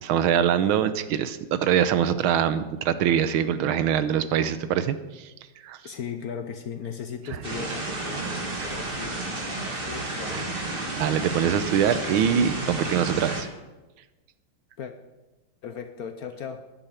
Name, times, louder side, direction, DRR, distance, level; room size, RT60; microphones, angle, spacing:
voice 1, 0.0-5.3 5.6-5.8 11.0-13.5, right 9 dB, 85° right, 13 dB, 1.6 m, -23 dB
voice 2, 5.8-10.7 14.8-14.9 15.6-16.6, left 7 dB, 65° left, 8 dB, 1.0 m, -37 dB
sound 1, 7.4-13.4, right 2 dB, 25° right, 2.0 m, -31 dB
10.0 x 9.0 x 8.2 m, 1.1 s
omnidirectional pair, 2.2 m